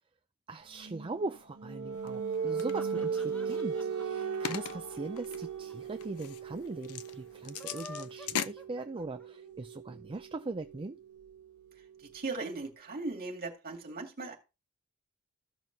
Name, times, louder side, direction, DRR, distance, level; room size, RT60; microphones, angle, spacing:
voice 1, 0.5-11.0, right 3 dB, 25° right, 0.4 m, -40 dB
sound 1, 0.8-12.3, right 6 dB, 70° right, 1.0 m, -38 dB
sound 2, 2.0-2.8 3.5-8.5, left 8 dB, 75° left, 0.6 m, -40 dB
sound 3, 2.4-5.7 6.0-6.1 6.3-6.4 7.4-9.5, left 2 dB, 5° left, 0.9 m, -50 dB
voice 2, 12.0-14.4, right 3 dB, 45° right, 2.2 m, -38 dB
15.0 x 6.0 x 2.7 m
head